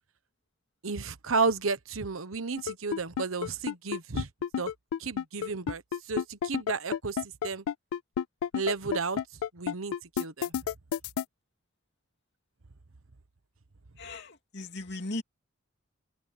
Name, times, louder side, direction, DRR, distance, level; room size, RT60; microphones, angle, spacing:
voice 1, 0.8-4.3 4.6-4.7 5.0-5.8 6.1-7.6 8.5-9.2 9.5-10.5, right 4 dB, 80° right, 1.2 m, -32 dB
sound 1, 2.6-11.2, left 8 dB, 85° left, 0.3 m, -30 dB
voice 2, 14.0-15.2, left 2 dB, 55° left, 2.9 m, -37 dB
head